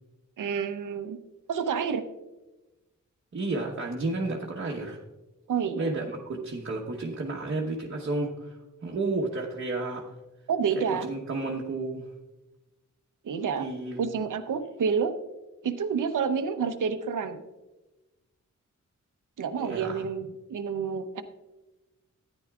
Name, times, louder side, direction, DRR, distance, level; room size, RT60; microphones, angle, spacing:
voice 1, 0.4-1.2 1.5-2.0 5.5-6.0 10.5-11.1 13.2-13.7 14.0-15.2 15.6-17.4 19.4-21.2, right 6 dB, 80° right, 9 dB, 0.8 m, -29 dB
voice 2, 3.3-5.0 5.8-8.6 8.8-10.0 10.8-12.1 13.5-14.0 19.6-20.0, right 2 dB, 45° right, -2 dB, 1.1 m, -32 dB
13.5 x 9.9 x 2.4 m, 1.1 s
wide cardioid pair, 115°, 31 cm